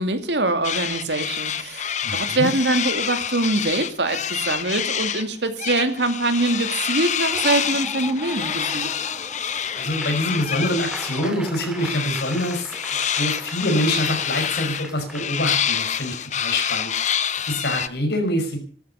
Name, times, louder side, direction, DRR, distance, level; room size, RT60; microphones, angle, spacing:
voice 1, 0.0-8.9, right 2 dB, 70° right, 8 dB, 2.4 m, -24 dB
sound 1, 0.6-5.3 5.6-11.3 11.7-17.9, left 8 dB, 40° left, 0.8 m, -27 dB
voice 2, 2.0-2.5 9.8-12.8 13.2-16.9 17.5-18.6, left 1 dB, 65° left, 5 dB, 5.6 m, -25 dB
Laughter / Applause, 7.2-15.6, right 1 dB, 5° right, 2.1 m, -39 dB
15.5 x 13.0 x 6.9 m, 0.43 s
head